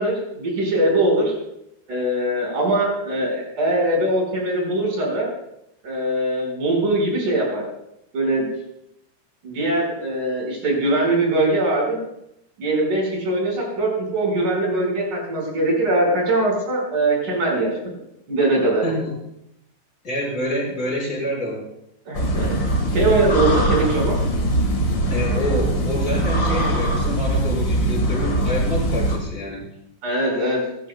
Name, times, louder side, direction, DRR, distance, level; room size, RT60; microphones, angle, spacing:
voice 1, 0.0-1.3 1.9-5.3 5.8-7.6 8.1-8.5 9.4-12.0 12.6-17.7 18.3-18.8 22.1-22.6 22.9-24.2 30.0-30.6, right 1 dB, 40° right, -2 dB, 6.1 m, -21 dB
voice 2, 18.8-19.2 20.0-21.6 25.1-29.7, equal, 20° left, -4 dB, 6.2 m, -27 dB
sound 1, 22.1-29.2, right 1 dB, 60° left, 1.1 m, -21 dB
24.0 x 13.5 x 2.2 m, 0.81 s
omnidirectional pair, 5.6 m